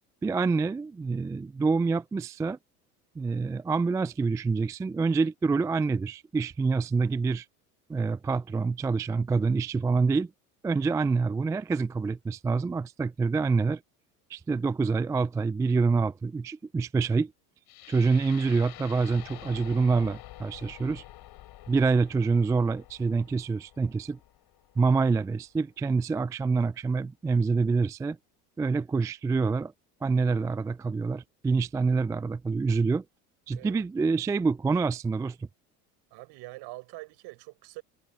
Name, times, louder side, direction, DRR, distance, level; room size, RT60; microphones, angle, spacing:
voice 1, 0.2-2.6 3.2-7.5 7.9-10.3 10.6-13.8 14.3-17.3 17.9-21.0 21.7-24.2 24.8-28.2 28.6-29.7 30.0-33.0 33.5-35.5, right 4 dB, 10° right, 0.3 m, -26 dB
sound 1, 17.7-25.7, left 16 dB, 55° left, 5.6 m, -48 dB
voice 2, 33.5-33.8 36.1-37.8, right 22 dB, 60° right, 5.5 m, -44 dB
hypercardioid pair, 75°, 45 cm